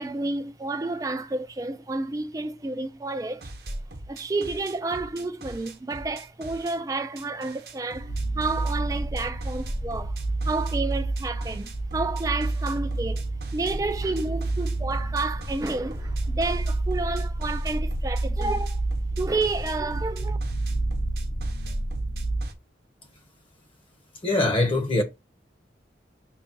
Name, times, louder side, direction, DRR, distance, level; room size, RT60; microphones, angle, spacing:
voice 1, 0.0-3.5 4.1-10.2 10.4-13.2 13.5-18.8 19.2-20.4, right 3 dB, 20° right, 0.3 m, -30 dB
sound 1, 3.4-6.8 7.2-22.5, right 1 dB, 60° right, 0.9 m, -40 dB
sound 2, 8.1-22.4, right 2 dB, 55° left, 0.9 m, -29 dB
voice 2, 24.2-25.0, left 2 dB, 30° left, 0.9 m, -22 dB
5.7 x 2.4 x 3.8 m
head